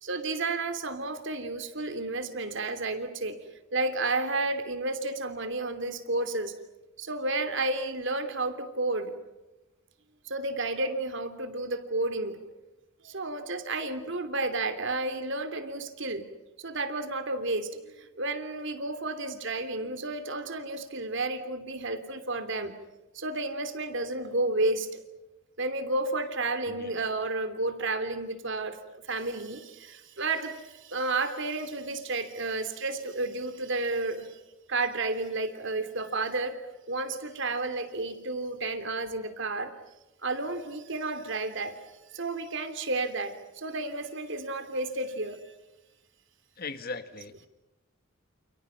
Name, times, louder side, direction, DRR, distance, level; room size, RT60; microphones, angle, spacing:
voice 1, 0.0-3.4 3.7-6.5 7.0-9.1 10.2-12.4 13.0-16.2 16.6-22.7 23.1-24.9 25.6-34.3 34.7-36.6 36.9-39.7 40.2-41.8 42.1-45.4, right 2 dB, 60° right, 9 dB, 3.1 m, -31 dB
voice 2, 46.6-47.5, left 4 dB, 45° left, 10 dB, 1.9 m, -39 dB
29.5 x 29.5 x 5.9 m, 1.0 s
head